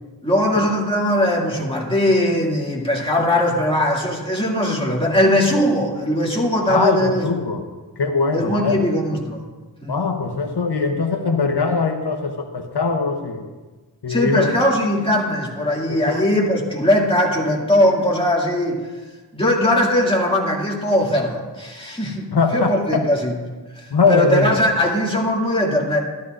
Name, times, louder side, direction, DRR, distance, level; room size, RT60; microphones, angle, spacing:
voice 1, 0.2-7.3 8.3-9.4 9.8-10.0 14.1-18.8 19.3-23.3 23.7-26.0, left 1 dB, 15° left, -3 dB, 2.3 m, -20 dB
voice 2, 6.7-7.7 8.0-8.8 9.9-13.5 14.0-14.5 15.9-16.2 22.3-23.0 23.9-24.6, left 4 dB, 75° left, 3 dB, 0.9 m, -21 dB
13.0 x 12.5 x 2.5 m, 1.3 s
wide cardioid pair, 45°, 41 cm